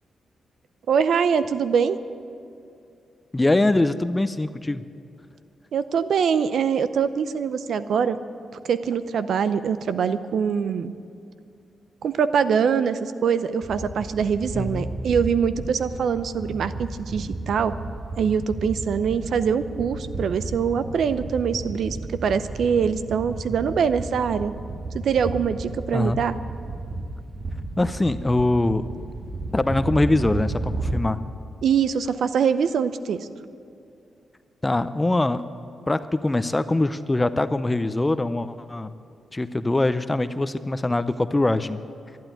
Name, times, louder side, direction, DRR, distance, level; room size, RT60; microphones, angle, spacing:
voice 1, 0.9-2.0 5.7-8.2 8.7-10.9 12.0-17.7 18.2-22.0 22.2-24.5 24.9-26.4 31.6-33.2, right 7 dB, 75° right, 12 dB, 0.7 m, -23 dB
voice 2, 3.3-4.8 14.5-14.8 25.9-26.2 27.8-28.9 29.5-31.2 34.6-35.4 35.9-38.9 39.3-41.8, left 2 dB, 20° left, 12 dB, 0.6 m, -23 dB
sound 1, 13.6-31.0, right 2 dB, 50° right, 1.7 m, -33 dB
12.5 x 11.5 x 9.2 m, 2.5 s
cardioid pair, 60°, 0 cm